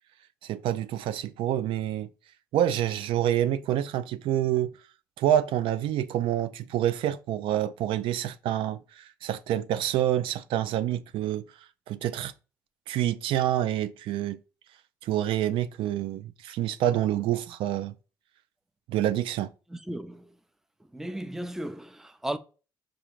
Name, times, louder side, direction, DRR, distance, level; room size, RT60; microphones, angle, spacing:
voice 1, 0.4-2.1 2.5-4.7 5.2-11.4 11.9-12.3 12.9-14.4 15.0-17.9 18.9-19.5, right 12 dB, 70° right, 0.3 m, -27 dB
voice 2, 19.7-20.4 20.9-22.4, right 1 dB, 5° right, 0.5 m, -35 dB
5.6 x 2.5 x 3.1 m
supercardioid pair, 60°, 9 cm